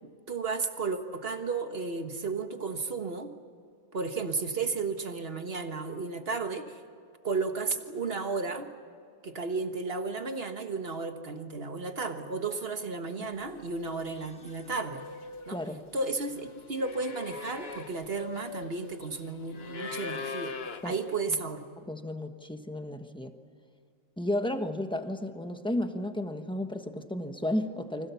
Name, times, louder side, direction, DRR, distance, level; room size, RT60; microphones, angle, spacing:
voice 1, 0.0-3.3 3.9-6.8 7.2-8.7 9.2-15.0 15.5-15.6 15.9-20.5 20.8-21.6, right 4 dB, 45° right, 7 dB, 1.6 m, -33 dB
sound 1, 13.6-13.8 14.1-21.2, left 4 dB, 45° left, 1.4 m, -42 dB
voice 2, 15.5-15.8 20.8-20.9 21.8-23.3 24.2-28.1, left 1 dB, 5° left, 7 dB, 1.2 m, -33 dB
30.0 x 25.5 x 7.1 m, 2.3 s
omnidirectional pair, 1.5 m